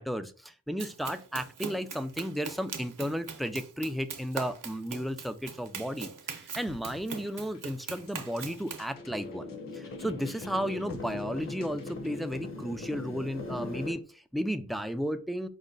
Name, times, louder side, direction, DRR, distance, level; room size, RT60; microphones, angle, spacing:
voice 1, 0.0-9.5 9.7-15.5, equal, ahead, 9 dB, 0.3 m, -34 dB
Run, 0.8-8.9, right 6 dB, 65° right, 0.8 m, -42 dB
sound 1, 6.7-12.3, left 4 dB, 70° left, 0.8 m, -56 dB
sound 2, 8.9-13.9, left 2 dB, 35° left, 0.9 m, -39 dB
4.9 x 2.1 x 3.9 m, 0.37 s
wide cardioid pair, 75°, 35 cm